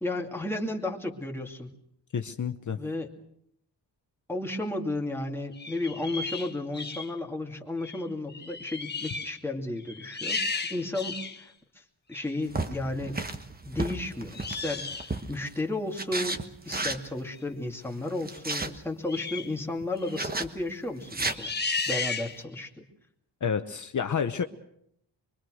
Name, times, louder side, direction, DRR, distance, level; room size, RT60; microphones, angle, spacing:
voice 1, 0.0-1.7 2.8-3.1 4.3-11.8 12.1-13.2 13.7-14.9 15.3-16.4 16.7-21.5 21.9-22.8, left 2 dB, 5° left, 0 dB, 2.5 m, -33 dB
voice 2, 2.1-2.8 23.4-24.4, left 7 dB, 45° left, 7 dB, 1.0 m, -29 dB
sound 1, 5.5-7.1 7.8-8.0 8.3-9.4 9.8-11.4 12.1-12.3 14.3-15.2 19.1-19.5 20.0-20.2 21.3-22.6, left 4 dB, 25° left, 1.5 m, -34 dB
sound 2, 12.5-15.5 16.0-17.1 18.1-18.7 20.1-20.5 21.0-21.4, right 2 dB, 20° right, 1.3 m, -33 dB
24.5 x 24.0 x 6.4 m, 0.73 s
wide cardioid pair, 170°, 43 cm